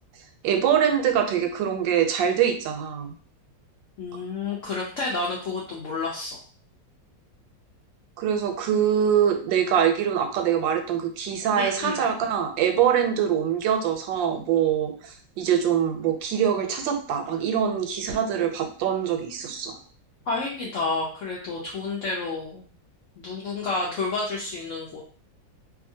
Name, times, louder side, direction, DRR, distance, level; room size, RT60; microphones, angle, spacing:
voice 1, 0.4-3.1 8.2-19.8, right 8 dB, 90° right, 5 dB, 1.3 m, -24 dB
voice 2, 4.0-6.4 11.5-12.0 20.3-22.7 23.2-25.0, left 3 dB, 80° left, -4 dB, 0.7 m, -30 dB
2.7 x 2.6 x 2.6 m, 0.43 s
omnidirectional pair, 2.0 m